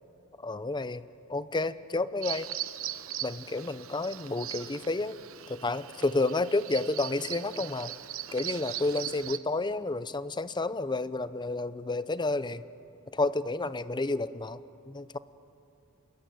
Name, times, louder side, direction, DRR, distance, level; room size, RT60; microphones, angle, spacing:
voice 1, 0.4-1.0 1.3-2.5 3.2-5.2 5.5-7.9 8.3-12.6 13.1-14.6 14.9-15.2, left 2 dB, 20° left, 14 dB, 0.7 m, -30 dB
Bird vocalization bird call bird song, 2.2-9.4, right 12 dB, 70° right, 1.0 m, -39 dB
27.0 x 22.5 x 9.2 m, 2.7 s
head